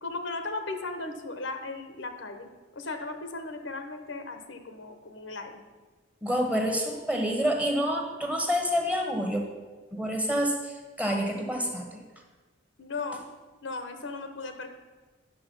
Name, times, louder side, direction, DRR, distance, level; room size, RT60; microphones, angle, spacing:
voice 1, 0.0-5.6 12.8-13.3 13.6-14.7, left 3 dB, 75° left, 7 dB, 1.0 m, -37 dB
voice 2, 6.2-9.4 9.9-12.0, equal, 5° right, 2 dB, 1.1 m, -28 dB
9.6 x 6.7 x 5.4 m, 1.3 s
head